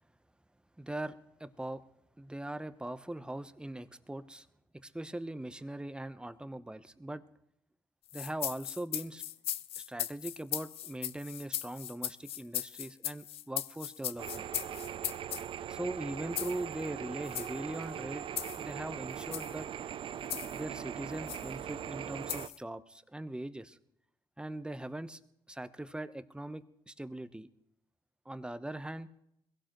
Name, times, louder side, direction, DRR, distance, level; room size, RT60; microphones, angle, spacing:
voice 1, 0.8-1.8 2.2-4.5 4.7-7.2 8.1-9.2 9.8-14.5 15.7-18.3 18.6-19.7 20.5-23.8 24.4-25.2 25.5-27.5 28.3-29.1, right 1 dB, 10° right, 12 dB, 0.9 m, -41 dB
sound 1, 8.1-15.5 16.4-16.6 17.3-17.5 18.4-18.6 19.2-19.5 20.3-20.6 21.3-21.5 22.3-22.6, left 12 dB, 70° left, 0.5 m, -38 dB
sound 2, 14.2-22.5, right 9 dB, 60° right, 0.5 m, -41 dB
22.5 x 16.0 x 3.1 m, 0.78 s
supercardioid pair, 55°, 10 cm